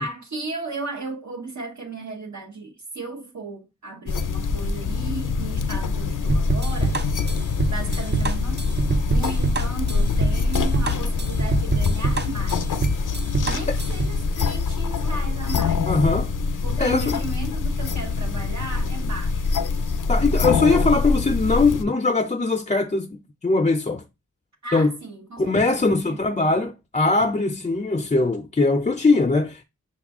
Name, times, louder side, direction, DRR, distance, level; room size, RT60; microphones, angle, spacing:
voice 1, 0.0-7.2 7.7-12.7 13.4-15.9 16.6-19.6 24.6-26.2 26.4-26.7, right 3 dB, 65° right, 0.9 m, -35 dB
sound 1, 4.1-21.8, left 4 dB, 90° left, 0.5 m, -24 dB
sound 2, 6.3-14.2, right 3 dB, 35° right, 0.6 m, -25 dB
voice 2, 15.9-16.3 16.8-17.2 20.1-24.0 24.7-24.9 25.4-29.6, left 3 dB, 25° left, 0.4 m, -21 dB
6.1 x 2.3 x 3.5 m
wide cardioid pair, 60°, 31 cm